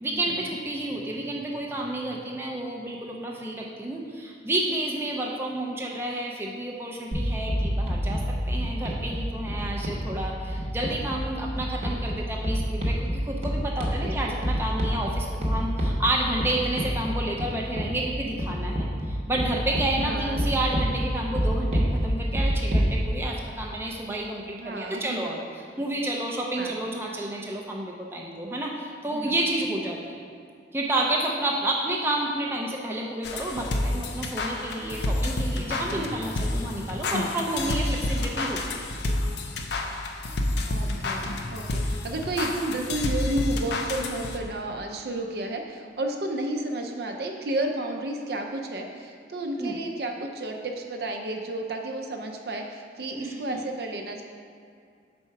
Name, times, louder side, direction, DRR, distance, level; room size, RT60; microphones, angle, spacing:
voice 1, 0.0-25.4 25.8-30.3 30.7-38.8 49.6-49.8 53.1-53.6, right 1 dB, 15° right, -2 dB, 0.4 m, -30 dB
sound 1, 7.1-23.0, equal, 35° right, 0.9 m, -28 dB
voice 2, 14.0-14.3 20.0-20.4 24.6-25.4 26.6-26.8 29.1-29.3 40.7-41.2 41.5-54.2, right 1 dB, 60° right, 3 dB, 0.6 m, -32 dB
sound 2, 33.2-44.6, left 2 dB, 70° left, 0.5 m, -29 dB
4.6 x 4.3 x 5.7 m, 2.3 s
head